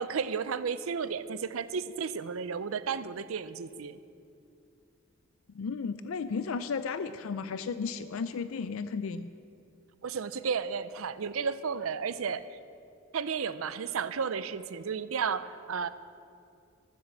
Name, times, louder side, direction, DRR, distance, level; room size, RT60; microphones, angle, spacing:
voice 1, 0.0-4.0 10.0-12.6 13.1-15.9, right 6 dB, 90° right, 14 dB, 0.5 m, -33 dB
voice 2, 5.5-9.3, left 5 dB, 85° left, 12 dB, 0.4 m, -34 dB
13.5 x 7.4 x 7.3 m, 2.5 s
head